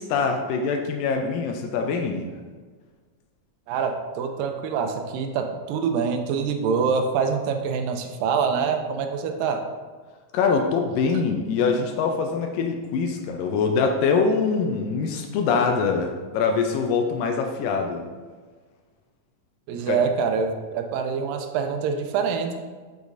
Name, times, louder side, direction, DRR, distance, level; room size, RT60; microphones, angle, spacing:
voice 1, 0.0-2.3 10.3-18.1 19.9-20.0, left 5 dB, 85° left, 4 dB, 2.2 m, -24 dB
voice 2, 3.7-9.6 19.7-22.5, right 6 dB, 85° right, 6 dB, 2.3 m, -25 dB
6.9 x 6.3 x 2.5 m, 1.4 s
omnidirectional pair, 3.9 m